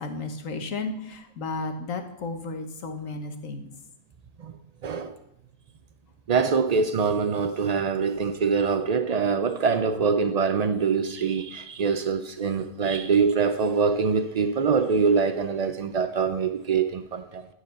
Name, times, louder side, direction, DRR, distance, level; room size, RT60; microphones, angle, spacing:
voice 1, 0.0-3.7, left 3 dB, 80° left, 1.6 m, -33 dB
voice 2, 4.8-5.1 6.3-17.5, right 5 dB, 80° right, 0.3 m, -24 dB
12.0 x 4.8 x 6.8 m
omnidirectional pair, 1.4 m